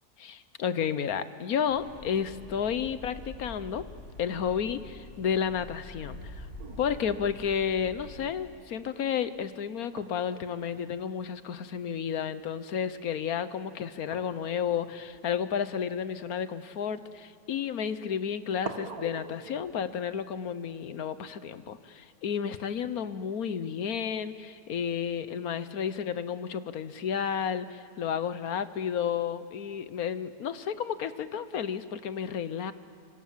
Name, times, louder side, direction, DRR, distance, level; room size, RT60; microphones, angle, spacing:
voice 1, 0.2-3.9 4.2-6.5 6.8-32.7, left 7 dB, 60° left, 13 dB, 1.3 m, -32 dB
sound 1, 1.7-8.2, left 2 dB, 30° left, 6.6 m, -47 dB
Boom, 6.0-9.0, equal, 75° left, 5.8 m, -48 dB
sound 2, 6.6-12.5 12.7-13.2 14.1-17.3 18.2-18.3 18.6-21.9 22.8-23.8, right 4 dB, 55° right, 1.9 m, -48 dB
27.0 x 25.5 x 7.4 m, 2.4 s
omnidirectional pair, 1.9 m